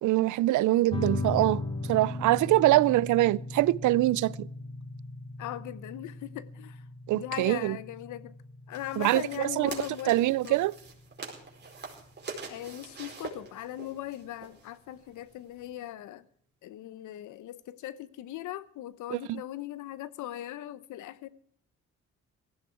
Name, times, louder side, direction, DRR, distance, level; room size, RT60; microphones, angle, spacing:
voice 1, 0.0-1.6 1.9-4.5 7.1-7.8 9.0-9.2 9.6-9.7 10.1-10.7 19.1-19.2, right 17 dB, 75° right, 0.5 m, -24 dB
sound 1, 0.9-11.9, left 2 dB, 15° left, 1.9 m, -38 dB
voice 2, 5.4-6.9 7.1-8.4 8.7-10.1 10.4-10.6 12.5-16.2 16.6-21.3, left 13 dB, 80° left, 0.9 m, -39 dB
sound 2, 8.7-15.7, right 4 dB, 35° right, 4.6 m, -44 dB
17.5 x 15.0 x 4.6 m
cardioid pair, 90°, 30 cm